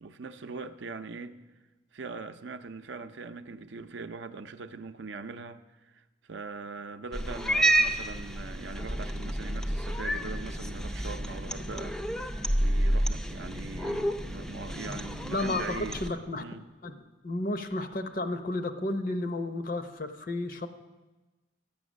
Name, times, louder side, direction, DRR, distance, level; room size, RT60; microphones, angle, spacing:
voice 1, 0.0-1.4 1.9-6.0 6.3-12.0 12.6-16.0 16.4-16.6, right 4 dB, 65° right, 0.5 m, -41 dB
Cat, 7.1-16.1, right 1 dB, 5° left, 0.4 m, -30 dB
voice 2, 15.3-16.4 16.8-16.9 17.2-20.7, left 2 dB, 45° left, 0.7 m, -32 dB
13.0 x 8.8 x 6.2 m
head